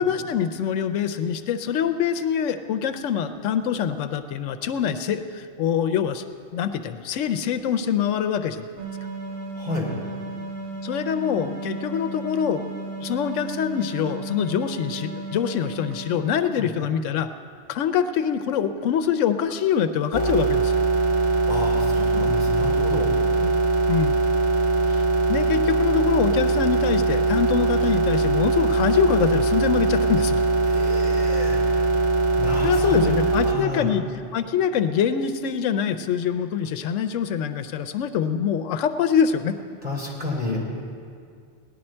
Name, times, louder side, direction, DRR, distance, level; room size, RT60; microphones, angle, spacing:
voice 1, 0.0-6.2 6.5-8.7 10.8-17.3 17.7-20.7 23.4-23.5 23.9-24.2 24.9-25.0 25.3-30.4 32.6-34.0 34.3-39.5, left 8 dB, 85° left, 9 dB, 1.0 m, -24 dB
sound 1, 8.8-16.9, right 2 dB, 85° right, 2.8 m, -35 dB
voice 2, 9.5-9.9 16.6-16.7 21.2-23.1 30.6-31.9 32.4-33.9 39.8-40.6, left 2 dB, 5° right, -5 dB, 3.2 m, -30 dB
sound 2, 20.1-33.5, right 3 dB, 40° right, 1.3 m, -21 dB
18.0 x 11.0 x 4.4 m, 2.3 s
omnidirectional pair, 1.2 m